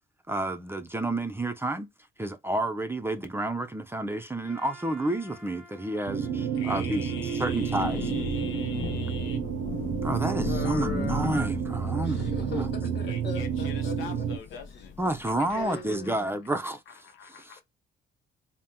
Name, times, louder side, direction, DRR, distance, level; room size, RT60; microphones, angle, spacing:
voice 1, 0.3-1.9 2.2-7.1 7.4-8.0 10.0-12.7 15.0-16.8, right 1 dB, 10° right, 0.4 m, -30 dB
Trumpet, 4.4-9.5, equal, 5° left, 1.2 m, -53 dB
sound 1, 6.1-14.4, right 7 dB, 75° right, 0.5 m, -30 dB
voice 2, 6.5-9.4 13.1-14.9 15.2-16.1 16.9-17.6, left 6 dB, 85° left, 0.7 m, -43 dB
Thunder / Rain, 7.2-15.8, left 7 dB, 40° left, 0.5 m, -38 dB
voice 3, 10.4-11.6 12.0-14.3 15.4-16.2, left 5 dB, 60° left, 1.3 m, -39 dB
2.8 x 2.1 x 3.5 m
cardioid pair, 90°, 20 cm